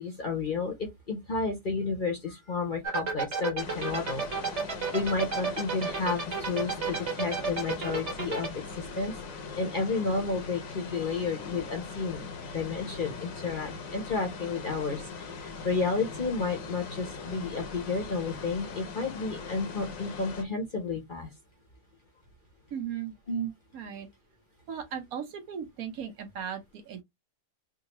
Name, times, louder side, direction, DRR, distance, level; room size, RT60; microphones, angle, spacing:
voice 1, 0.0-9.1 9.6-12.2 12.5-21.3 23.3-23.5, left 4 dB, 40° left, 0.8 m, -32 dB
sound 1, 2.8-8.5, right 5 dB, 50° right, 1.5 m, -31 dB
sound 2, 3.6-20.4, left 4 dB, 65° left, 1.1 m, -41 dB
voice 2, 22.7-23.1 23.7-24.1 24.7-27.0, right 8 dB, 70° right, 1.2 m, -37 dB
3.6 x 2.5 x 2.9 m
omnidirectional pair, 1.6 m